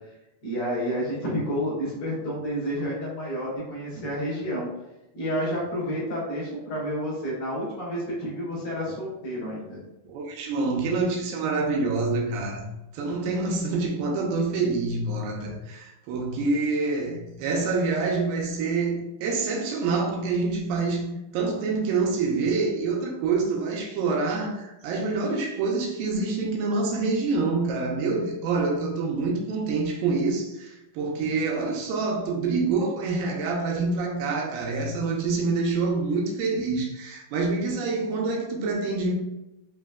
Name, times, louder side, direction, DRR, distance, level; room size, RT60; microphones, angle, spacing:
voice 1, 0.4-4.7 5.1-9.8, equal, 55° left, -6 dB, 1.8 m, -30 dB
voice 2, 10.1-12.7 12.9-39.1, right 3 dB, 75° right, -1 dB, 2.4 m, -26 dB
5.6 x 3.2 x 2.3 m, 0.94 s
omnidirectional pair, 4.3 m